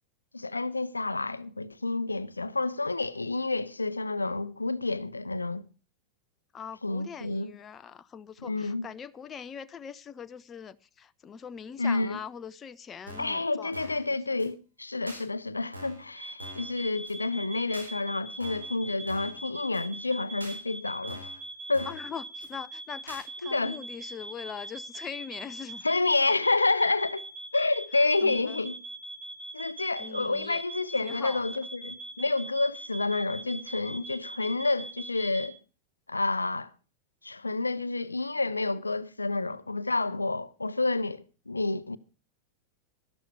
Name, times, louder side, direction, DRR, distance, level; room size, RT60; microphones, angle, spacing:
voice 1, 0.3-5.6 6.8-7.5 8.4-8.9 11.8-12.2 13.2-21.3 21.7-21.9 23.4-23.8 25.8-27.3 27.5-28.8 29.5-35.6 36.1-36.7 37.2-42.0, left 3 dB, 80° left, 0.6 m, -29 dB
voice 2, 6.5-14.4 21.8-25.9 28.2-28.6 30.0-30.6 31.0-31.4, left 7 dB, 25° left, 0.6 m, -42 dB
sound 1, 13.1-13.4 13.7-14.1 14.4-14.5 15.1-15.2 15.7-16.1 16.4-16.7 17.1-17.2 17.7-17.9 18.4-18.7 19.1-19.4 19.7-19.8 20.4-20.6 21.1-21.4 21.7-22.1 22.4-22.5 23.1-23.2, equal, 80° right, 4.1 m, -44 dB
sound 2, 16.2-35.5, right 2 dB, 20° right, 2.2 m, -42 dB
12.5 x 12.5 x 4.9 m
figure-of-eight pair, 90°, 0 cm